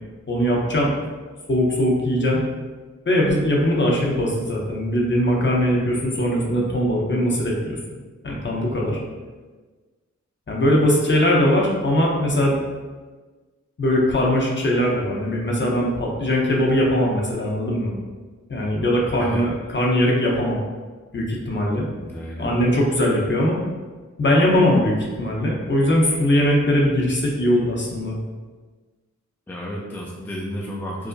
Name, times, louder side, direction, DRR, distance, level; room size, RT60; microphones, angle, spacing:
voice 1, 0.3-0.9 1.5-2.4 3.1-7.8 8.2-9.0 10.5-12.5 13.8-18.0 18.5-20.6 21.1-21.9 22.4-23.6 24.2-28.2, left 1 dB, 40° left, -2 dB, 0.7 m, -20 dB
voice 2, 22.0-22.5 29.5-31.1, equal, 5° left, -3 dB, 0.4 m, -31 dB
4.7 x 2.1 x 2.6 m, 1.3 s
wide cardioid pair, 90°, 29 cm